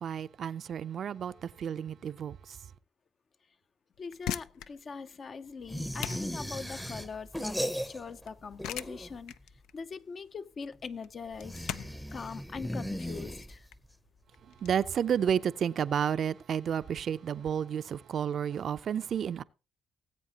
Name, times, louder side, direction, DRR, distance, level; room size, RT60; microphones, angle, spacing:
voice 1, 0.0-2.6 14.4-19.4, right 8 dB, 60° right, 0.4 m, -31 dB
sound 1, 3.9-14.7, left 11 dB, 90° left, 0.5 m, -42 dB
voice 2, 4.0-9.3 9.7-13.7, left 5 dB, 45° left, 0.6 m, -42 dB
sound 2, 5.7-8.3 8.5-9.3 11.3-13.9, equal, 5° left, 0.7 m, -37 dB
19.5 x 8.1 x 2.8 m
cardioid pair, 90°, 0 cm